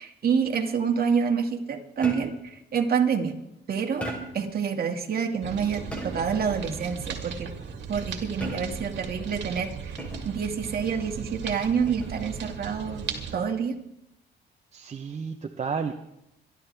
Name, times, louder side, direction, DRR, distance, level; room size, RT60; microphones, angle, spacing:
voice 1, 0.0-3.3 3.7-4.1 4.3-7.5 7.9-13.8, right 6 dB, 50° right, 3 dB, 2.1 m, -27 dB
sound 1, 2.0-2.5 4.0-4.5 5.9-6.4 8.4-9.0 10.0-10.4 11.9-12.2, right 1 dB, 5° left, 3.9 m, -36 dB
sound 2, 5.4-13.4, right 6 dB, 65° right, 2.3 m, -37 dB
voice 2, 14.7-15.9, right 5 dB, 35° right, 5 dB, 0.9 m, -32 dB
26.5 x 12.0 x 3.4 m, 0.86 s
cardioid pair, 90°, 20 cm